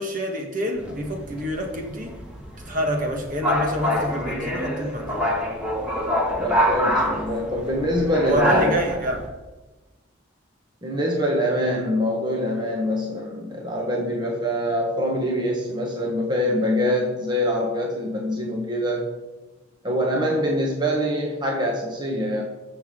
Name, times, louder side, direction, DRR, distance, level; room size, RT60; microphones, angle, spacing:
voice 1, 0.0-2.2 2.6-5.2 8.2-9.3, equal, 40° right, 1.7 m, -27 dB
sound 1, 0.8-9.3, equal, 5° right, 1.9 m, -26 dB
voice 2, 6.3-8.9 10.8-19.1 19.8-22.4, equal, 20° right, 1.4 m, -24 dB
21.0 x 7.0 x 3.8 m
head